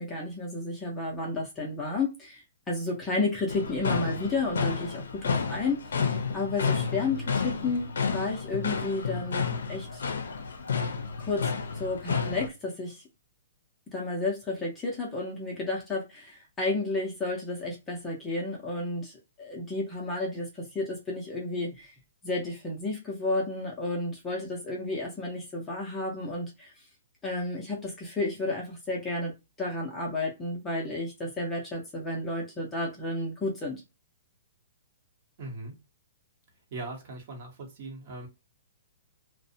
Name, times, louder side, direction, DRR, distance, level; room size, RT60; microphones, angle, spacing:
voice 1, 0.0-5.8 6.3-10.0 10.8-10.9 11.2-13.0 13.9-21.9 22.2-26.7 27.2-33.8, left 2 dB, 10° left, 0.6 m, -32 dB
sound 1, 3.5-12.5, left 5 dB, 85° left, 0.4 m, -31 dB
voice 2, 35.4-35.7 36.7-38.3, right 2 dB, 40° right, 0.9 m, -39 dB
2.5 x 2.0 x 2.6 m
hypercardioid pair, 165°, 0 cm